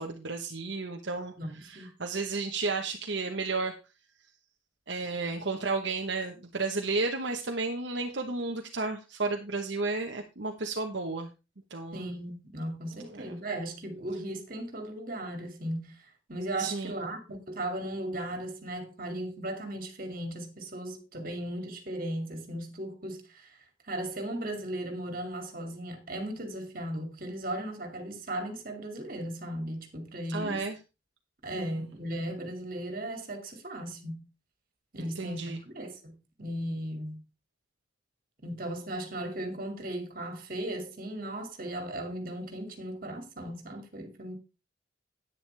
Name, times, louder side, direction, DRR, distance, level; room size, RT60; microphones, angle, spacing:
voice 1, 0.0-1.3 1.6-3.7 4.9-11.3 11.7-12.1 13.1-13.4 16.6-16.9 30.3-30.8 31.6-31.9 35.0-35.6, right 3 dB, 70° right, 1.1 m, -33 dB
voice 2, 1.4-1.9 11.9-23.5 23.9-30.6 31.4-34.3 34.9-37.2 38.4-44.4, right 1 dB, 45° right, 2.4 m, -37 dB
10.5 x 9.5 x 3.4 m
head